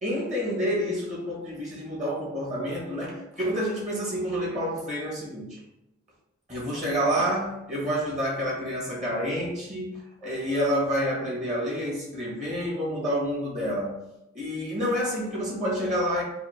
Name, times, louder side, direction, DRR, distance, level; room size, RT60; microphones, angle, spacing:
voice 1, 0.0-5.6 6.5-14.0 14.3-16.2, equal, 35° right, -4 dB, 1.3 m, -28 dB
3.5 x 2.6 x 4.4 m, 0.86 s
head